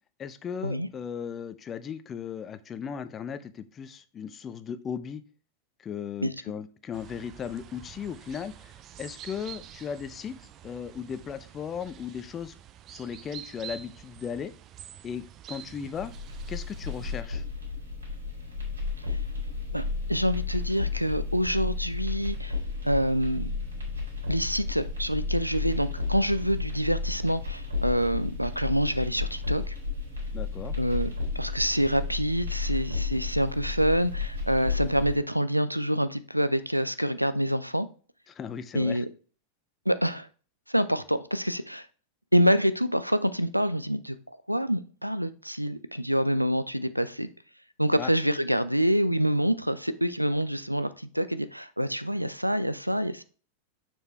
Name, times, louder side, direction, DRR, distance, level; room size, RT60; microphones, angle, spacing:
voice 1, 0.2-5.2 5.8-12.5 12.9-14.5 15.0-16.1 16.5-17.4 30.3-30.8 38.3-39.0 48.0-48.1, left 7 dB, 25° left, 0.5 m, -37 dB
sound 1, 6.9-17.2, right 10 dB, 35° right, 0.5 m, -47 dB
sound 2, 15.9-35.1, left 4 dB, 75° right, 2.5 m, -33 dB
voice 2, 19.7-22.6 22.8-23.5 24.3-29.7 30.8-37.9 38.7-39.1 39.9-40.3 40.7-41.9 42.3-47.3 47.8-53.2, equal, 90° right, 0.4 m, -26 dB
6.6 x 4.6 x 3.1 m
figure-of-eight pair, 90°, 0 cm